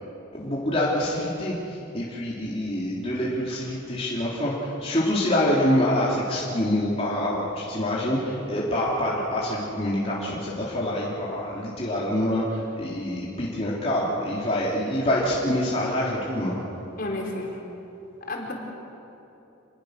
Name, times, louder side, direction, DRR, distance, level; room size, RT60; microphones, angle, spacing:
voice 1, 0.3-1.5 1.9-4.5 4.8-12.4 12.8-16.6, left 1 dB, 30° left, -6 dB, 3.5 m, -26 dB
voice 2, 17.0-17.6 18.3-18.5, left 2 dB, 45° left, 0 dB, 4.5 m, -31 dB
28.5 x 21.0 x 6.7 m, 3.0 s
head